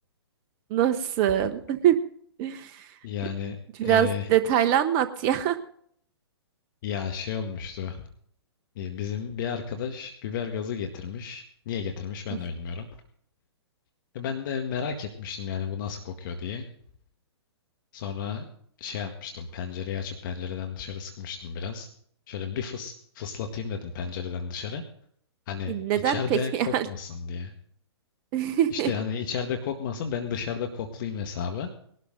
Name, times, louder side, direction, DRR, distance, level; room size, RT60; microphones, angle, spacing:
voice 1, 0.7-2.0 2.4-2.9 3.8-5.6 12.3-12.4 25.7-26.9 28.3-28.9, right 10 dB, 35° right, 10 dB, 1.0 m, -24 dB
voice 2, 3.0-3.6 3.8-4.3 6.8-8.0 8.8-12.9 14.1-16.6 17.9-18.4 18.8-21.9 22.3-24.8 25.5-25.8 26.0-27.5 28.7-31.7, left 7 dB, 45° left, 5 dB, 1.8 m, -33 dB
21.0 x 12.5 x 3.9 m, 0.63 s
figure-of-eight pair, 125°, 14 cm